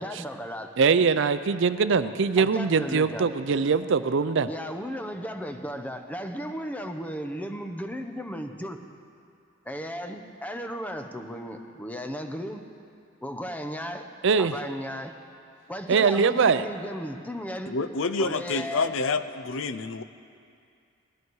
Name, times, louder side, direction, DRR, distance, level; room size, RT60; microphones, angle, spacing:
voice 1, 0.0-0.7 2.4-3.3 4.4-8.8 9.7-12.6 13.2-14.1 14.4-15.2 15.7-17.8 18.2-19.0, equal, 10° left, 6 dB, 0.8 m, -35 dB
voice 2, 0.8-4.5 14.2-14.5 15.9-16.6, right 5 dB, 65° right, 12 dB, 0.5 m, -22 dB
voice 3, 17.7-20.0, left 4 dB, 70° left, 12 dB, 0.6 m, -28 dB
19.0 x 13.5 x 4.7 m, 2.4 s
head